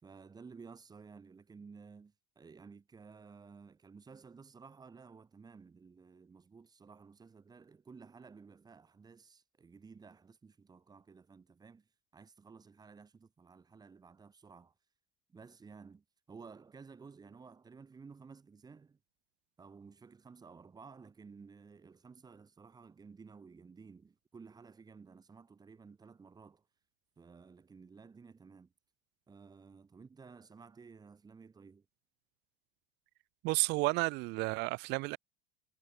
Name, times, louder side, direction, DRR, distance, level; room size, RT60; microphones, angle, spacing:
voice 1, 0.0-14.7 15.3-19.0 19.6-26.7 27.2-28.7 29.3-31.9, right 5 dB, 20° right, 5.4 m, -55 dB
voice 2, 33.4-35.2, right 24 dB, 70° right, 0.8 m, -31 dB
cardioid pair, 125°, 18 cm